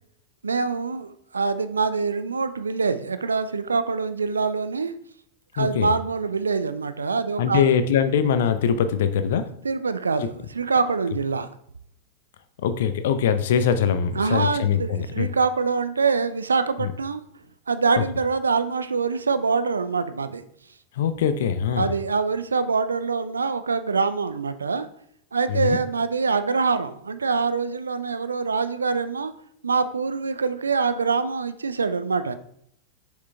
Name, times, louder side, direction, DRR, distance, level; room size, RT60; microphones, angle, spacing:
voice 1, 0.4-4.9 5.5-7.7 9.6-11.5 14.2-17.2 17.7-20.5 21.8-24.9 25.3-29.3 29.6-32.3, right 4 dB, 75° right, 12 dB, 0.5 m, -24 dB
voice 2, 5.6-5.9 7.4-9.5 10.2-10.3 12.6-15.3 16.8-16.9 21.0-21.9 25.5-25.8, left 7 dB, 55° left, 11 dB, 0.7 m, -22 dB
7.1 x 6.4 x 3.4 m, 0.69 s
figure-of-eight pair, 90°, 0 cm